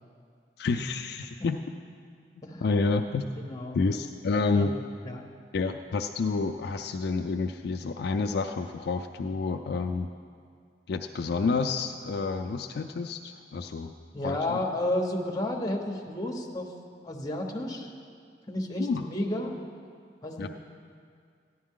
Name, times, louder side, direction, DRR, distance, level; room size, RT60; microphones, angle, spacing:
voice 1, 0.6-1.6 2.6-3.3 3.7-4.8 5.5-10.1 10.9-13.9 14.2-14.6 18.8-19.1 20.4-20.5, left 4 dB, 65° left, 5 dB, 0.4 m, -29 dB
voice 2, 3.4-3.8 4.5-5.2 14.1-16.7 17.0-17.9 18.5-19.5 20.2-20.5, left 1 dB, 20° left, 0 dB, 1.0 m, -32 dB
14.0 x 10.5 x 3.7 m, 2.2 s
head